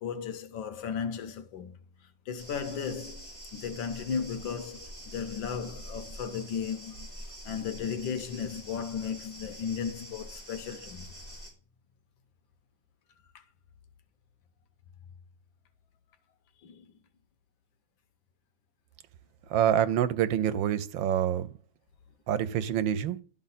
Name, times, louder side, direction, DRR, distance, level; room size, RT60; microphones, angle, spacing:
voice 1, 0.0-1.7 2.3-7.1 7.4-11.1 16.6-16.9, left 7 dB, 80° left, 1.5 m, -35 dB
sound 1, 2.4-11.5, equal, 5° left, 3.6 m, -46 dB
voice 2, 19.5-21.5 22.3-23.2, right 10 dB, 85° right, 1.4 m, -26 dB
11.5 x 3.9 x 4.1 m
omnidirectional pair, 2.1 m